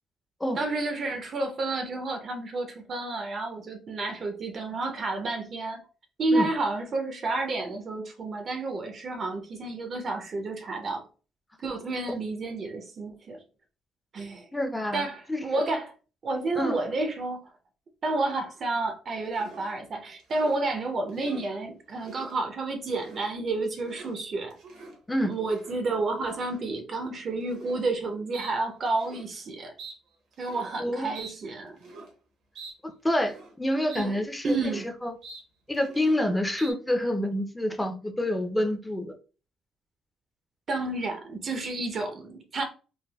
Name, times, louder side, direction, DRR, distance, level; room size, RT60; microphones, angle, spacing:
voice 1, 0.6-5.8 6.2-11.0 11.6-13.4 14.1-14.5 14.9-15.9 16.2-17.5 18.0-24.6 25.2-29.7 30.4-31.8 33.9-34.2 34.4-34.9 40.7-42.6, right 2 dB, 50° right, 0.6 m, -30 dB
voice 2, 14.5-15.5 16.6-16.8 25.1-25.3 30.8-31.1 32.8-34.6 35.0-35.1 35.7-39.1, left 1 dB, 10° left, 0.6 m, -27 dB
sound 1, 19.3-19.7 20.2-20.6 21.1-21.5 21.9-22.3 22.8-23.3 23.6-24.2 24.5-25.0 25.5-25.8 26.3-26.6 27.5-27.9 28.3-28.5 28.9-29.3 29.8-30.0 30.3-30.7 31.1-31.3 31.8-32.1 32.6-32.7 33.1-33.5 33.9-34.1 34.4-34.9 35.2-35.4 35.7-36.2 36.6-36.7, right 3 dB, 80° right, 1.0 m, -45 dB
3.3 x 2.3 x 2.3 m
cardioid pair, 90°, 0 cm